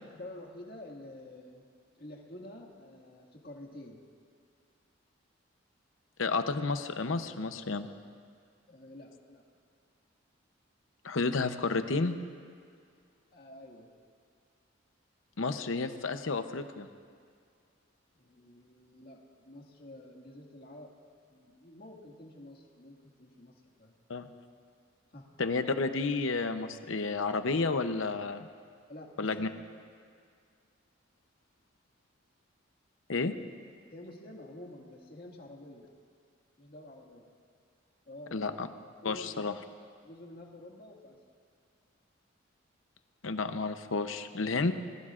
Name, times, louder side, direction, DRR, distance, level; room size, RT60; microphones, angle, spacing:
voice 1, 0.1-1.7 2.0-4.0 8.7-9.4 13.3-13.9 18.1-20.9 21.3-23.9 25.1-25.3 28.9-29.5 33.9-35.9 36.6-37.3 38.1-38.6 39.0-39.6 40.0-41.2, left 1 dB, 50° left, -1 dB, 2.0 m, -49 dB
voice 2, 6.2-7.9 11.0-12.1 15.4-16.9 24.1-24.3 25.4-28.5 29.2-29.5 33.1-33.3 38.3-38.7 39.0-39.5 43.2-44.7, left 3 dB, 80° left, 9 dB, 0.8 m, -31 dB
27.0 x 20.0 x 2.5 m, 2.1 s
head